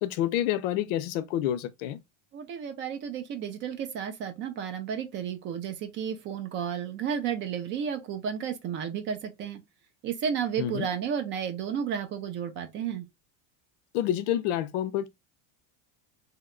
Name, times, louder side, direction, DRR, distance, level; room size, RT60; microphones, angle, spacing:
voice 1, 0.0-2.0 10.6-10.9 13.9-15.1, left 11 dB, 75° left, 0.6 m, -28 dB
voice 2, 2.3-9.6 10.0-13.1, right 8 dB, 30° right, 0.4 m, -32 dB
2.7 x 2.2 x 3.7 m
cardioid pair, 160°, 37 cm